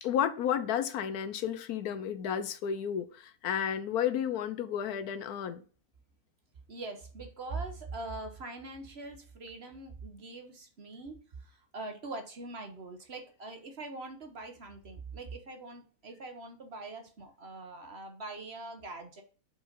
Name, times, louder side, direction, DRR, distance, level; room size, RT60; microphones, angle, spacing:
voice 1, 0.0-5.6, left 9 dB, 75° left, 1.2 m, -32 dB
voice 2, 6.7-11.2 11.4-19.2, right 3 dB, 45° right, 1.2 m, -43 dB
5.3 x 4.5 x 5.5 m
omnidirectional pair, 1.6 m